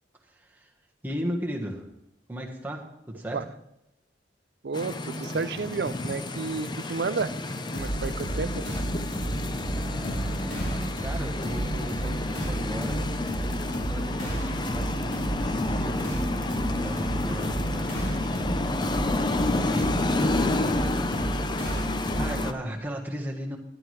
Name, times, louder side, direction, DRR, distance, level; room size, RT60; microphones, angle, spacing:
voice 1, 0.3-0.7 1.0-1.9 2.3-3.4 9.7-13.0 13.9-18.0 19.4-20.8 22.2-23.6, equal, 10° right, 0 dB, 1.3 m, -36 dB
voice 2, 4.6-7.3 7.7-8.6, right 4 dB, 65° right, 14 dB, 0.4 m, -31 dB
sound 1, 4.7-22.5, left 2 dB, 25° left, 0.5 m, -30 dB
sound 2, 7.7-22.5, right 1 dB, 80° left, 3.8 m, -32 dB
13.5 x 11.0 x 3.3 m, 0.86 s
head